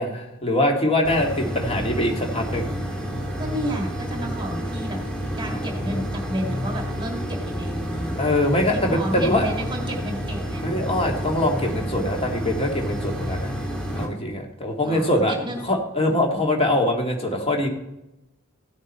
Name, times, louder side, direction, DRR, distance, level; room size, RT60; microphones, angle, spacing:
voice 1, 0.0-2.7 5.5-5.8 8.2-9.5 10.6-13.5 13.9-15.3 15.6-17.7, left 1 dB, 30° left, 2 dB, 2.1 m, -23 dB
sound 1, 1.0-14.1, equal, 5° left, 2.7 m, -29 dB
voice 2, 3.4-5.0 5.4-8.2 8.7-10.7 14.8-15.6 16.0-16.4, equal, 20° right, 1 dB, 2.0 m, -31 dB
15.5 x 9.0 x 4.4 m, 0.91 s
head